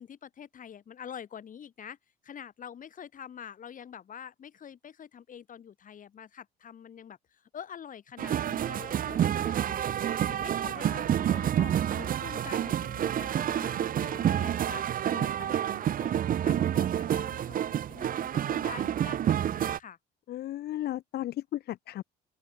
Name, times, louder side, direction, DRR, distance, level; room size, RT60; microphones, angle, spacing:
voice 1, 0.0-2.0 2.2-14.8 15.1-20.0, left 8 dB, 45° left, 7.3 m, -46 dB
sound 1, 8.2-19.8, right 10 dB, 50° right, 1.4 m, -28 dB
voice 2, 20.3-22.0, left 13 dB, 60° left, 1.5 m, -34 dB
open air
supercardioid pair, 85°, 18 cm